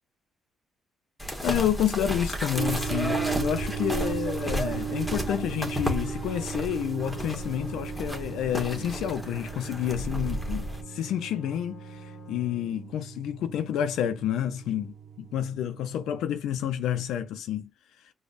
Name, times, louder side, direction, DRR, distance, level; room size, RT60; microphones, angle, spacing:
sound 1, 1.2-10.8, equal, 5° left, 1.0 m, -33 dB
voice 1, 1.4-17.7, left 10 dB, 85° left, 0.3 m, -29 dB
sound 2, 2.6-16.2, right 7 dB, 70° right, 0.3 m, -37 dB
Wind instrument woodwind instrument, 7.0-12.9, left 8 dB, 45° left, 0.6 m, -50 dB
5.0 x 2.1 x 2.5 m
cardioid pair, 90°, 0 cm